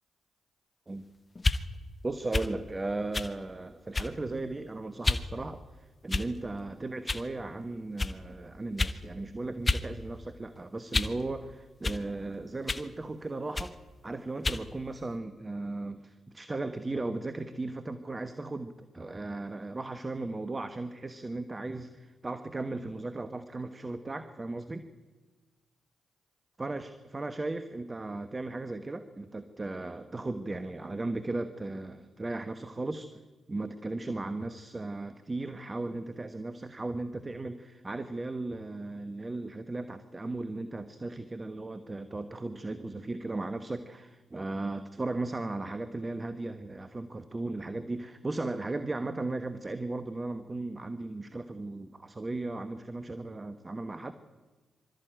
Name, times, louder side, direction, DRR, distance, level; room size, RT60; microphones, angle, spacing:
sound 1, 1.4-1.6 2.3-2.5 3.1-3.3 3.9-4.2 5.0-5.3 6.1-6.5 7.1-7.3 8.0-8.1 8.8-9.0 9.7-9.9 10.2-11.2 11.8-12.0 12.7-12.9 13.5-13.7 14.4-14.6, left 3 dB, 35° left, 1.2 m, -30 dB
voice 1, 2.0-13.8 14.0-24.9 26.6-33.2 33.5-54.1, right 2 dB, 30° right, 10 dB, 1.3 m, -36 dB
24.0 x 13.5 x 9.1 m, 1.3 s
hypercardioid pair, 40°, 0 cm